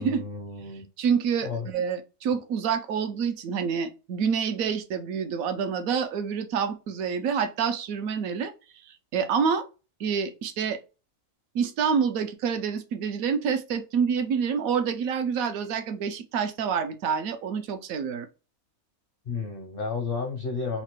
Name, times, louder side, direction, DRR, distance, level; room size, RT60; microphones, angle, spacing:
voice 1, 0.0-0.9 1.4-1.7 19.3-20.8, left 4 dB, 55° left, 4 dB, 0.6 m, -32 dB
voice 2, 1.0-8.5 8.8-9.6 10.0-10.8 11.5-18.3, right 6 dB, 75° right, 8 dB, 1.0 m, -27 dB
4.0 x 2.2 x 2.9 m, 0.31 s
omnidirectional pair, 1.5 m